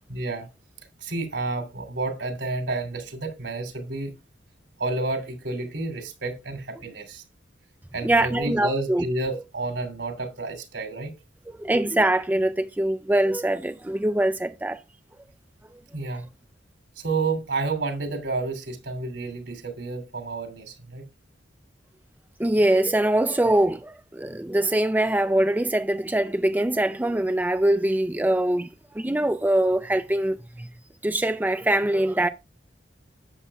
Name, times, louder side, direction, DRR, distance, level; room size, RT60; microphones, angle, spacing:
voice 1, 0.1-0.5 1.0-4.1 4.8-7.2 7.9-11.1 15.9-16.3 17.0-21.1, right 3 dB, 75° right, 2.8 m, -30 dB
voice 2, 8.0-9.0 11.6-14.8 22.4-28.7 29.0-30.7 31.0-32.3, right 1 dB, 10° right, 0.4 m, -23 dB
11.0 x 8.1 x 2.3 m
head